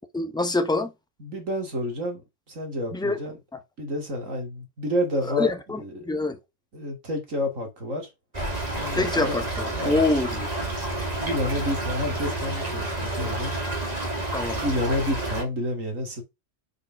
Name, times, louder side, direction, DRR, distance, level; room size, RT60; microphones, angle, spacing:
voice 1, 0.1-0.9 2.9-3.2 5.2-5.8 6.1-6.4 9.0-10.5 14.3-14.6, left 2 dB, 5° left, 0.9 m, -25 dB
voice 2, 1.2-3.4 3.8-5.5 5.8-6.3 6.7-8.1 8.8-9.4 9.7-10.0 11.2-13.5 14.6-16.2, left 1 dB, 90° right, 3.0 m, -29 dB
Stream / Trickle dribble, 8.3-15.4, right 2 dB, 30° right, 2.8 m, -30 dB
6.5 x 5.2 x 5.9 m
omnidirectional pair, 1.3 m